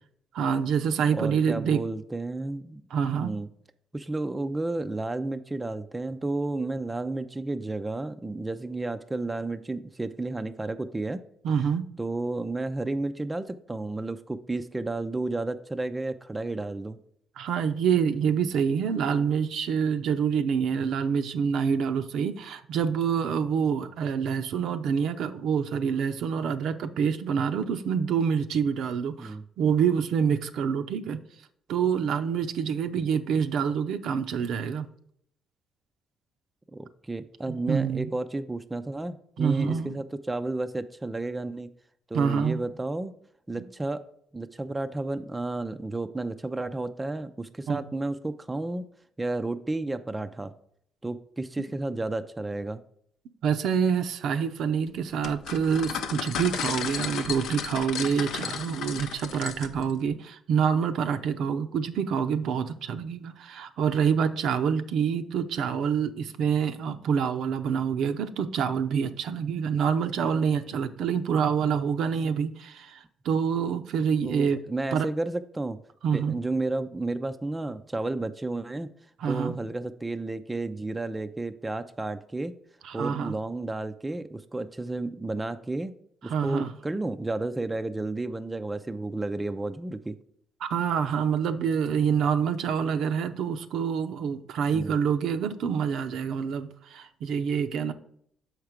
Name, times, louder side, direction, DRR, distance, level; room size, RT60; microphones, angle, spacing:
voice 1, 0.3-1.8 2.9-3.3 11.4-11.8 17.4-31.2 31.7-34.9 37.5-38.1 39.4-40.0 42.1-42.6 47.7-47.8 53.4-74.6 74.9-75.1 76.0-76.3 79.2-79.6 82.9-83.3 86.2-86.7 90.6-97.9, right 7 dB, 75° right, 9 dB, 0.6 m, -26 dB
voice 2, 1.1-2.8 3.2-3.5 3.9-11.2 12.0-17.0 29.2-29.4 36.7-41.7 42.1-43.1 43.5-44.0 44.3-48.9 49.2-50.5 51.0-52.8 74.1-75.8 76.1-78.9 79.3-82.5 82.9-86.0 86.2-90.2 94.7-94.9, right 2 dB, 15° right, 9 dB, 0.4 m, -32 dB
sound 1, 55.2-59.9, left 8 dB, 80° left, 0.6 m, -34 dB
6.5 x 4.7 x 5.0 m, 0.67 s
cardioid pair, 115°, 0 cm